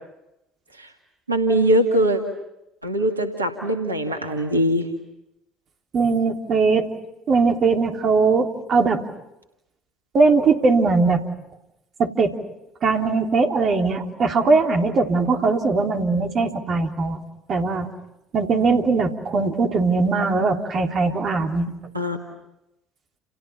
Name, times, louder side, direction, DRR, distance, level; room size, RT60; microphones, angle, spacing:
voice 1, 1.3-2.2 2.8-4.9 21.9-22.2, right 1 dB, 85° right, 4 dB, 2.2 m, -21 dB
voice 2, 5.9-6.9 7.3-9.0 10.1-11.2 12.0-12.3 12.8-17.2 17.5-17.9 18.3-21.7, right 4 dB, 45° right, 3 dB, 3.3 m, -20 dB
30.0 x 30.0 x 5.8 m, 0.87 s
figure-of-eight pair, 55°, 0 cm